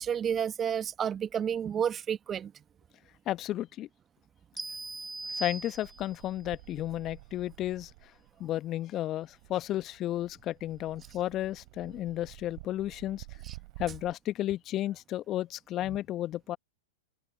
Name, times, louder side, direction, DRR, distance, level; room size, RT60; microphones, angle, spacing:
voice 1, 0.0-2.5, right 8 dB, 25° right, 1.0 m, -30 dB
voice 2, 3.3-3.9 5.3-7.9 8.4-13.2 13.8-16.6, left 13 dB, 30° left, 1.1 m, -33 dB
sound 1, 4.6-6.3, right 2 dB, 5° right, 2.5 m, -40 dB
sound 2, 5.2-14.1, right 24 dB, 50° right, 4.7 m, -51 dB
figure-of-eight pair, 100°, 0 cm